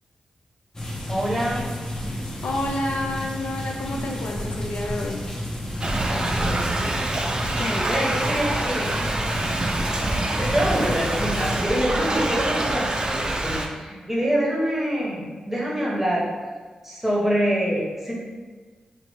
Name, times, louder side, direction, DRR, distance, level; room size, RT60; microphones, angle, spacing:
sound 1, 0.7-11.6, left 1 dB, 20° left, 0.7 m, -32 dB
voice 1, 1.1-1.7 6.0-7.2 7.9-9.0 10.4-16.3 16.8-18.2, equal, 10° right, -5 dB, 1.0 m, -26 dB
voice 2, 2.4-5.2 7.6-8.1, left 1 dB, 75° left, 0 dB, 0.3 m, -29 dB
Thunder / Rain, 5.8-13.7, right 2 dB, 35° right, 0.4 m, -26 dB
2.8 x 2.2 x 3.1 m, 1.4 s
cardioid pair, 45°, 3 cm